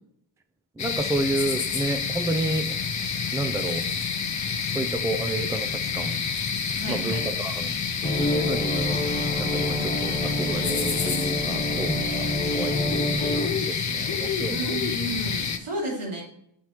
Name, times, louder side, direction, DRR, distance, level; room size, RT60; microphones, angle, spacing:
sound 1, 0.8-15.6, left 6 dB, 40° left, 0.6 m, -28 dB
voice 1, 0.8-2.8 3.3-3.8 4.7-5.7 5.9-6.2 6.9-7.7 8.2-9.0 9.4-12.3 12.6-13.1 13.4-14.8, right 2 dB, 5° right, 9 dB, 0.4 m, -30 dB
voice 2, 6.7-7.3 14.5-16.2, right 1 dB, 85° right, -3 dB, 2.8 m, -32 dB
sound 2, 8.0-13.5, equal, 15° left, 1.5 m, -29 dB
7.1 x 4.5 x 4.4 m, 0.72 s
wide cardioid pair, 110°, 49 cm